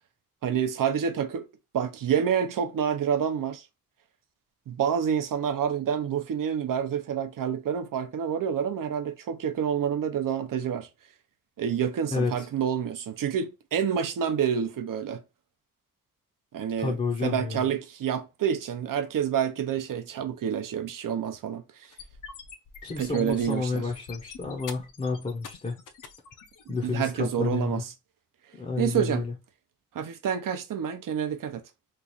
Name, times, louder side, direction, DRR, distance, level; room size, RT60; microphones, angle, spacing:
voice 1, 0.4-1.5 1.7-3.6 4.7-10.9 11.6-15.2 16.5-17.0 17.2-21.6 23.0-23.9 26.8-27.8 28.8-29.2 29.9-31.6, right 8 dB, 70° right, 0.6 m, -28 dB
voice 2, 12.1-12.5 16.8-17.7 22.8-25.8 26.7-27.8 28.5-29.3, left 4 dB, 20° left, 0.6 m, -30 dB
sound 1, 21.8-26.8, left 6 dB, 65° left, 0.6 m, -45 dB
3.1 x 2.4 x 3.9 m
wide cardioid pair, 150°, 34 cm